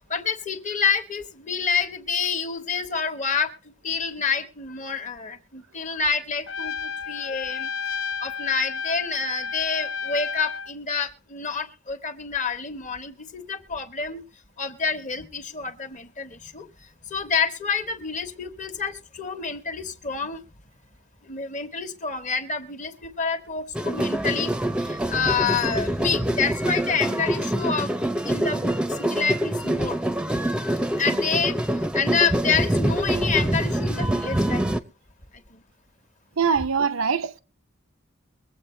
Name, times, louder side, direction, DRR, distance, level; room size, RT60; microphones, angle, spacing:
voice 1, 0.1-3.5 3.8-7.7 8.2-14.2 14.6-16.6 17.1-20.4 21.3-24.5 24.8-28.0 28.2-30.0 31.0-31.5 31.9-34.6, left 5 dB, 40° left, 1.3 m, -28 dB
Trumpet, 6.5-10.7, left 5 dB, 70° left, 0.7 m, -32 dB
sound 1, 23.7-34.8, right 1 dB, 5° right, 0.7 m, -25 dB
voice 2, 36.4-37.4, right 6 dB, 90° right, 0.7 m, -23 dB
22.5 x 7.9 x 3.2 m
head